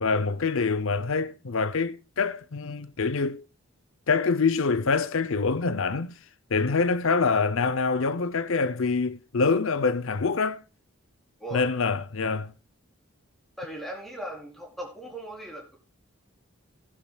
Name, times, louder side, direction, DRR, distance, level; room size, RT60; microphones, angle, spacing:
voice 1, 0.0-3.4 4.1-6.1 6.5-10.6 11.5-12.5, left 4 dB, 70° left, 0.7 m, -25 dB
voice 2, 11.4-11.7 13.6-15.8, right 1 dB, ahead, 4.0 m, -38 dB
17.5 x 10.5 x 2.3 m
head